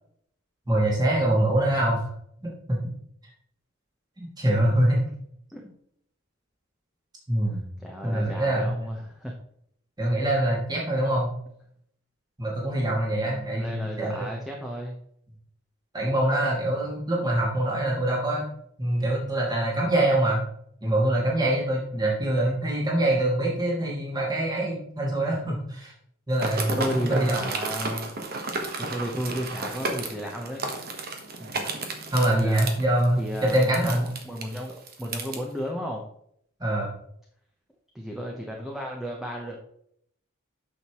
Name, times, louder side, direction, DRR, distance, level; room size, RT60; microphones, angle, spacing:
voice 1, 0.7-2.1 2.4-2.8 4.2-5.0 7.3-7.6 8.0-8.8 10.0-11.3 12.4-14.3 15.9-18.5 18.8-20.4 20.8-25.9 26.3-27.4 32.1-34.0 36.6-36.9, right 1 dB, 20° right, -3 dB, 2.2 m, -24 dB
voice 2, 7.8-9.3 13.3-14.9 26.7-28.1 28.8-30.7 31.4-31.7 32.3-32.7 33.2-36.0 37.9-39.6, equal, ahead, -1 dB, 0.9 m, -33 dB
sound 1, 26.3-35.4, right 3 dB, 50° right, 1.2 m, -33 dB
8.8 x 6.5 x 3.1 m, 0.68 s
head